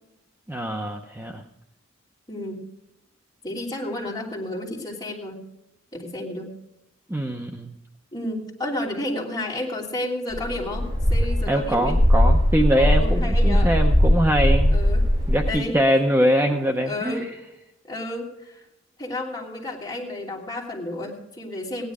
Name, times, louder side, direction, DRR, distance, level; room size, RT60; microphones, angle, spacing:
voice 1, 0.5-1.4 7.1-7.7 11.5-14.8 15.3-17.3, right 1 dB, 10° right, 3 dB, 0.7 m, -23 dB
voice 2, 2.3-2.7 3.4-5.4 5.9-6.5 8.1-12.0 12.8-13.7 14.7-15.1 15.4-15.8 16.8-17.3 17.9-18.6 19.0-21.9, left 1 dB, 20° left, -3 dB, 3.0 m, -31 dB
sound 1, 10.3-15.5, left 1 dB, 30° right, 6.7 m, -19 dB
16.5 x 10.5 x 4.9 m, 0.88 s
head